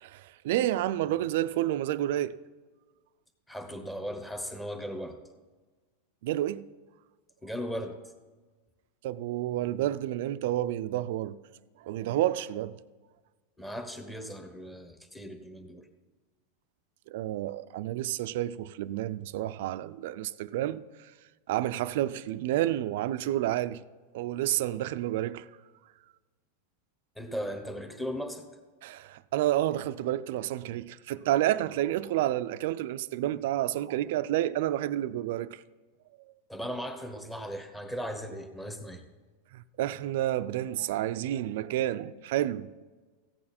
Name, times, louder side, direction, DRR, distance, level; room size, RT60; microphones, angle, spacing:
voice 1, 0.0-2.4 6.2-6.6 9.0-11.4 11.8-12.7 17.1-20.8 21.5-23.8 24.1-25.4 28.8-35.6 39.5-42.8, right 13 dB, 65° right, 0.4 m, -30 dB
voice 2, 3.5-5.2 7.4-8.0 13.6-15.9 27.2-28.4 36.5-39.0, equal, 5° left, 1.1 m, -37 dB
15.0 x 8.7 x 4.3 m
supercardioid pair, 150°, 0 cm